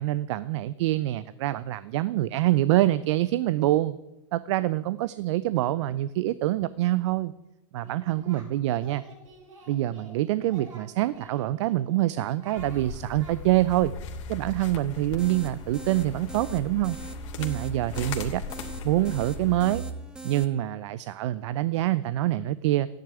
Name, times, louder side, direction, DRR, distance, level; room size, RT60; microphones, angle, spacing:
voice 1, 0.0-4.0 4.3-7.3 7.7-9.0 9.7-13.9 14.3-17.0 17.4-18.4 18.8-19.8 20.2-22.9, right 15 dB, 65° right, 16 dB, 0.6 m, -25 dB
Singing, 7.8-8.5 8.8-10.2 10.5-11.7 12.2-12.9 13.2-13.4, right 2 dB, 80° right, 5.7 m, -49 dB
sound 1, 12.6-19.8, left 3 dB, 65° left, 2.8 m, -38 dB
sound 2, 14.9-20.4, right 3 dB, 5° right, 1.9 m, -43 dB
13.5 x 10.0 x 9.9 m, 0.96 s
hypercardioid pair, 100°, 16 cm